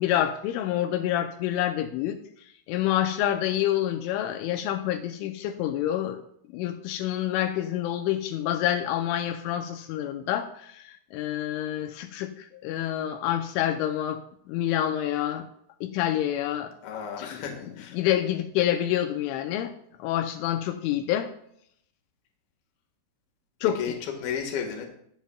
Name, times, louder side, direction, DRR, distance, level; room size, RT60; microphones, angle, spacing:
voice 1, 0.0-2.2 2.7-6.2 6.5-10.8 11.1-14.2 14.5-15.5 15.8-16.7 17.2-17.4 17.9-19.7 20.0-21.3 23.6-24.0, left 12 dB, 85° left, 6 dB, 3.1 m, -27 dB
voice 2, 16.8-18.0 23.6-24.9, left 7 dB, 60° left, 2 dB, 3.1 m, -33 dB
21.0 x 7.4 x 2.3 m, 0.69 s
omnidirectional pair, 5.5 m